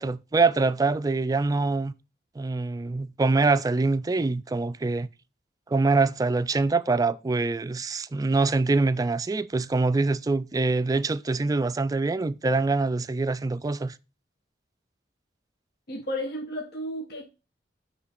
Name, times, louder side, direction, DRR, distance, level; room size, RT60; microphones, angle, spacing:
voice 1, 0.0-1.9 2.4-5.1 5.7-14.0, right 3 dB, 20° right, 0.3 m, -24 dB
voice 2, 15.9-17.3, equal, 60° left, 1.0 m, -33 dB
9.5 x 3.3 x 4.9 m
head